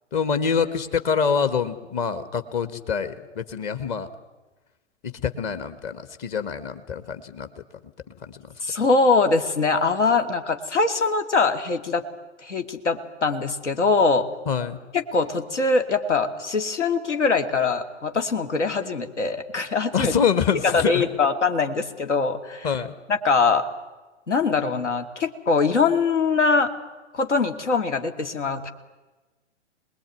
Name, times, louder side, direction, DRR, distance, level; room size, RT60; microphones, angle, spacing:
voice 1, 0.1-4.1 5.0-7.6 8.3-8.4 14.5-14.8 19.9-21.1 22.6-22.9, left 6 dB, 30° left, 11 dB, 1.9 m, -25 dB
voice 2, 8.6-12.0 12.4-14.3 14.9-20.1 20.6-22.7 23.1-23.7 24.3-26.7 27.1-28.7, left 4 dB, 70° left, 7 dB, 2.7 m, -22 dB
27.0 x 20.5 x 9.4 m, 1.2 s
figure-of-eight pair, 115°, 36 cm